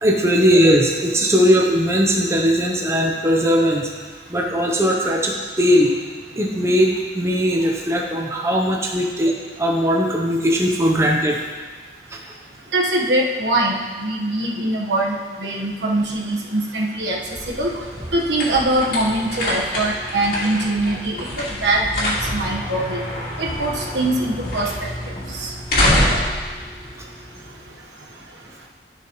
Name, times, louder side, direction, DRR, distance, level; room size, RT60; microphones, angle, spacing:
voice 1, 0.0-3.9 4.3-5.9 6.4-11.4 12.1-12.2, equal, 15° right, 0 dB, 0.7 m, -19 dB
voice 2, 12.7-17.2 17.5-17.7 18.1-23.0 23.4-25.1 25.4-25.5, right 1 dB, 85° right, -1 dB, 1.2 m, -22 dB
sound 1, 17.0-27.7, left 1 dB, 50° left, 2.5 m, -26 dB
14.0 x 6.0 x 3.1 m, 1.5 s
head